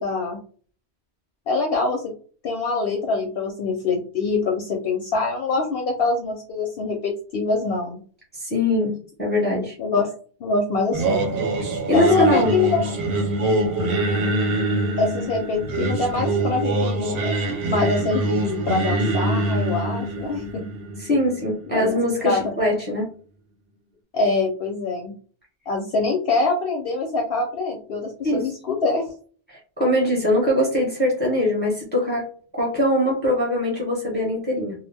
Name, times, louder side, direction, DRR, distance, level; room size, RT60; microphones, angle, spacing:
voice 1, 0.0-0.4 1.5-2.1 2.4-8.0 9.8-10.1 10.4-11.2 11.9-12.8 15.0-17.3 17.7-20.6 21.7-21.9 22.2-22.4 24.1-25.1 25.7-29.1, left 3 dB, 65° left, 1 dB, 0.7 m, -24 dB
voice 2, 8.3-9.7 11.9-12.5 21.0-23.1 28.2-28.5 29.5-32.3 32.6-34.7, left 1 dB, 10° left, -3 dB, 0.9 m, -22 dB
Singing, 10.9-22.0, right 2 dB, 65° right, 0.8 m, -24 dB
2.3 x 2.0 x 3.3 m, 0.42 s
omnidirectional pair, 1.2 m